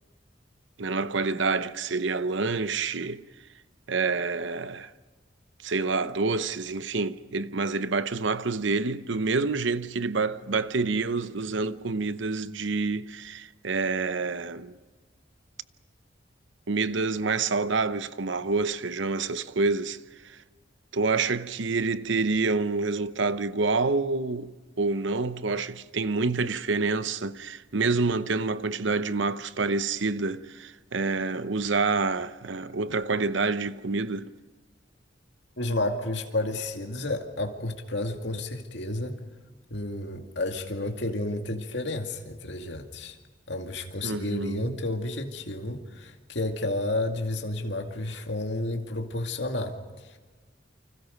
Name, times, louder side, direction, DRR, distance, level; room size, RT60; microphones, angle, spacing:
voice 1, 0.8-3.2 3.9-4.9 5.6-14.8 16.7-20.4 20.9-34.3 44.0-44.8, right 4 dB, 75° right, 0.8 m, -27 dB
voice 2, 35.6-39.2 39.7-43.2 43.5-50.2, left 2 dB, 65° left, 2.3 m, -31 dB
29.5 x 25.5 x 5.3 m
head